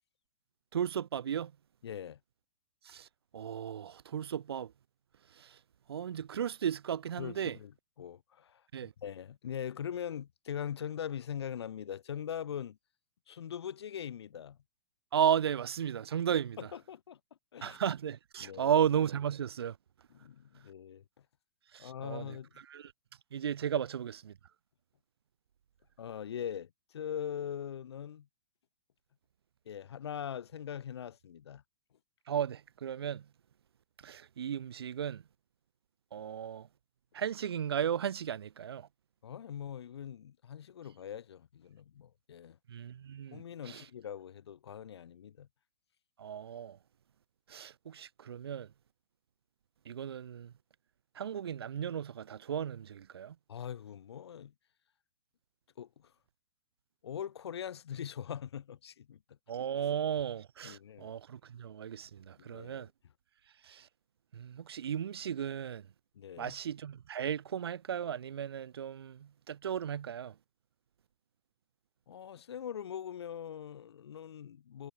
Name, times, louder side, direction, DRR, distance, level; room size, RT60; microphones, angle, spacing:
voice 1, 0.7-1.5 2.9-3.1 3.3-4.7 5.4-5.6 5.9-7.6 8.7-8.9 15.1-16.6 17.6-19.8 21.7-22.4 22.7-22.9 23.3-24.3 32.3-33.3 34.0-35.2 36.1-36.7 37.1-38.9 42.7-43.9 46.2-46.8 47.5-48.7 49.9-50.5 51.2-53.4 59.5-62.9 63.6-63.9 64.3-65.9 66.4-70.3, right 9 dB, 70° right, 2.0 m, -35 dB
voice 2, 1.8-2.2 7.2-7.7 8.0-12.8 13.3-14.6 16.6-17.2 17.5-17.8 18.4-18.7 20.1-21.0 21.8-22.5 26.0-28.3 29.7-31.6 39.2-42.6 43.3-45.5 53.5-54.5 55.8-56.1 57.0-59.4 60.6-61.1 62.4-62.9 66.1-66.6 72.1-74.9, left 9 dB, 85° left, 1.1 m, -42 dB
hypercardioid pair, 180°, 13 cm